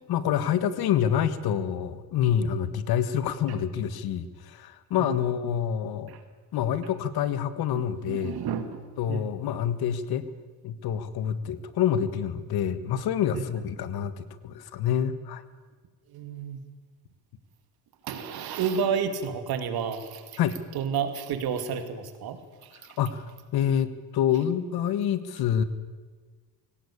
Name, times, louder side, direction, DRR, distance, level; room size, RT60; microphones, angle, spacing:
voice 1, 0.1-6.1 6.5-8.4 9.0-10.2 10.6-15.4 20.4-20.6 23.0-23.3 23.5-25.6, left 9 dB, 85° left, 13 dB, 1.5 m, -27 dB
voice 2, 7.8-8.8 9.1-9.3 13.3-13.4 16.1-16.6 18.0-20.4 20.7-23.0, right 7 dB, 80° right, 9 dB, 2.5 m, -31 dB
22.5 x 18.0 x 8.6 m, 1.4 s
cardioid pair, 110°, 37 cm